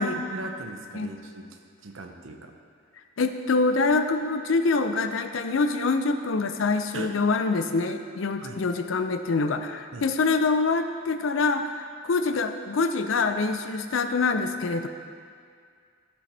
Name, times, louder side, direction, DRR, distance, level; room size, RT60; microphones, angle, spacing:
voice 1, 0.1-2.5 6.9-7.2 8.4-8.6 9.9-10.1, right 2 dB, 90° right, 4 dB, 0.8 m, -39 dB
voice 2, 3.2-14.9, left 3 dB, 80° left, 7 dB, 0.5 m, -25 dB
13.5 x 5.1 x 3.4 m, 2.2 s
head